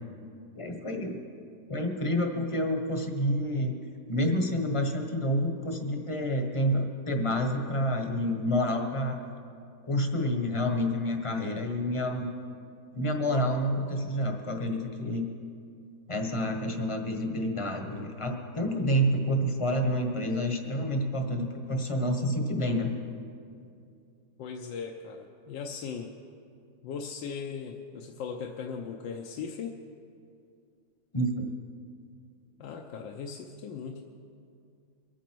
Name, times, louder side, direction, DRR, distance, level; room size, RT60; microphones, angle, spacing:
voice 1, 0.5-1.2 1.7-3.7 4.1-9.2 9.8-12.3 12.9-15.2 16.1-22.9 31.1-31.5, equal, 20° left, 4 dB, 0.9 m, -28 dB
voice 2, 24.4-26.1 26.8-29.7 32.6-34.0, left 6 dB, 75° left, 2 dB, 1.4 m, -38 dB
23.0 x 9.2 x 4.6 m, 2.4 s
omnidirectional pair, 2.1 m